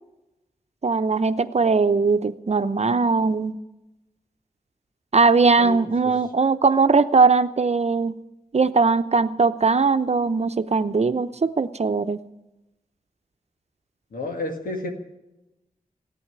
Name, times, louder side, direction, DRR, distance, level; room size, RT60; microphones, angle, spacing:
voice 1, 0.8-3.5 5.1-8.1 8.5-12.2, right 4 dB, 50° right, 11 dB, 0.8 m, -20 dB
voice 2, 14.1-14.9, left 2 dB, 90° left, 3 dB, 2.1 m, -30 dB
14.0 x 9.3 x 9.4 m, 0.98 s
cardioid pair, 45°, 14 cm